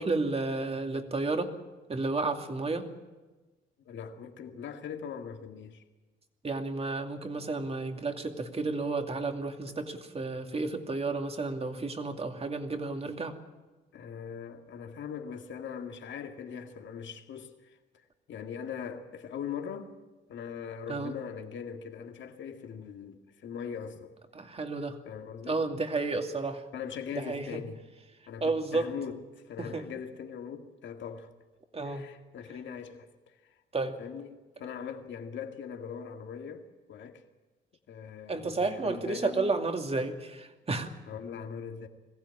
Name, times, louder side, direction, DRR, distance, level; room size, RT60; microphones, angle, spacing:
voice 1, 0.0-1.5 1.9-2.9 6.4-13.4 20.9-21.1 24.3-25.0 25.5-26.6 27.3-27.6 28.4-28.8 29.6-29.8 31.7-32.0 33.7-34.0 38.3-40.9, right 3 dB, 30° right, 2.5 m, -32 dB
voice 2, 3.8-5.8 9.7-9.8 13.9-19.9 20.3-24.1 25.0-25.6 26.7-27.8 28.3-29.2 29.4-31.3 31.8-33.5 34.0-37.2 37.9-39.5 41.1-41.9, left 7 dB, 70° left, 2.2 m, -41 dB
22.0 x 15.5 x 9.9 m
cardioid pair, 90°, 20 cm